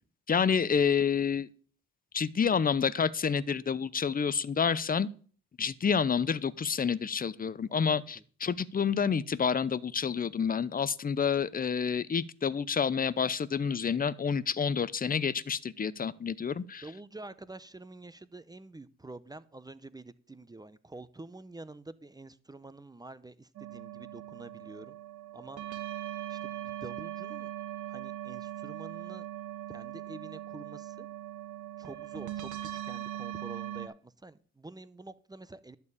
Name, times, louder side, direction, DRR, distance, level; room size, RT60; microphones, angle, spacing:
voice 1, 0.3-1.5 2.1-5.1 5.6-16.8, left 6 dB, 30° left, 0.7 m, -29 dB
voice 2, 16.5-25.0 25.3-25.6 26.3-27.5 27.9-29.3 29.7-31.1 31.8-35.8, right 2 dB, 15° right, 0.7 m, -48 dB
sound 1, 23.6-33.9, right 13 dB, 75° right, 1.6 m, -40 dB
12.0 x 4.6 x 8.4 m
cardioid pair, 90°, 30 cm